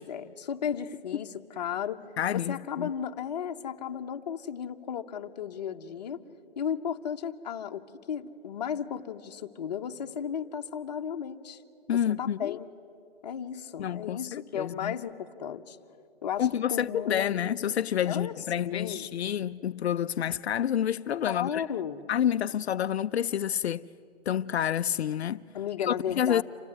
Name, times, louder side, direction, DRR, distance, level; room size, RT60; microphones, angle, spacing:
voice 1, 0.0-2.0 2.3-6.2 6.6-7.8 8.1-11.6 11.9-12.7 13.2-15.8 16.2-17.4 17.6-17.7 18.0-19.0 21.3-22.0 25.5-26.4, left 8 dB, 40° left, 1.0 m, -34 dB
voice 2, 2.2-2.9 11.9-12.6 13.8-14.9 16.4-21.6 22.1-23.9 24.3-25.4 25.8-26.4, left 10 dB, 80° left, 0.5 m, -29 dB
27.0 x 15.5 x 9.7 m
hypercardioid pair, 160°, 32 cm